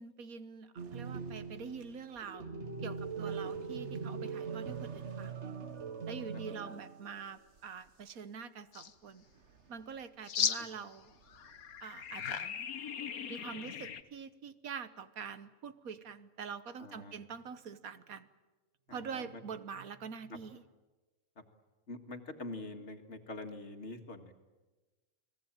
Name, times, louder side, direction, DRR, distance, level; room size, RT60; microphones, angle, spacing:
voice 1, 0.0-2.5 2.8-5.4 6.1-9.2 9.7-11.1 11.8-12.5 13.3-18.3 18.9-20.6, right 6 dB, 80° right, 13 dB, 1.6 m, -45 dB
sound 1, 0.8-7.3 7.6-7.7 9.4-10.0 11.1-11.8, right 5 dB, 55° right, 1.6 m, -41 dB
sound 2, 8.7-8.9 10.3-11.0 11.3-14.0, left 8 dB, 85° left, 1.6 m, -37 dB
voice 2, 16.8-17.1 18.9-19.4 21.9-24.3, left 2 dB, 55° left, 6 dB, 2.2 m, -45 dB
30.0 x 19.5 x 8.9 m, 1.2 s
omnidirectional pair, 1.5 m